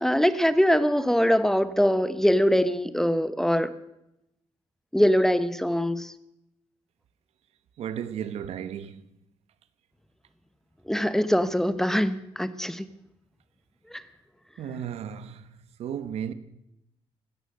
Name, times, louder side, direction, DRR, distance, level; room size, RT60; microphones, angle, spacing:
voice 1, 0.0-3.7 4.9-6.1 10.9-12.8 13.9-14.0, equal, 5° left, 0.9 m, -23 dB
voice 2, 7.8-9.1 14.6-16.3, right 9 dB, 75° right, 1.2 m, -34 dB
16.5 x 13.0 x 6.7 m
cardioid pair, 95°, 11 cm